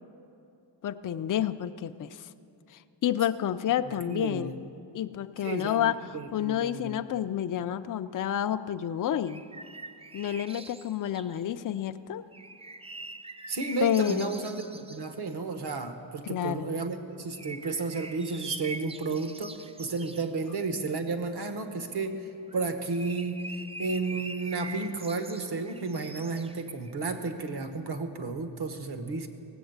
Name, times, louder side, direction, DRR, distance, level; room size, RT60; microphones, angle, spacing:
voice 1, 0.8-2.3 2.7-4.5 4.9-9.4 10.1-12.2 13.8-14.3 16.2-16.8, left 10 dB, 45° left, 10 dB, 0.5 m, -29 dB
voice 2, 4.0-4.5 5.4-7.0 13.5-29.3, right 3 dB, 55° right, 8 dB, 1.2 m, -33 dB
sound 1, 9.3-11.5 12.3-15.1 17.3-20.3 22.5-27.0, right 3 dB, 15° right, 0.3 m, -44 dB
17.0 x 7.8 x 8.0 m, 2.6 s
wide cardioid pair, 105°, 46 cm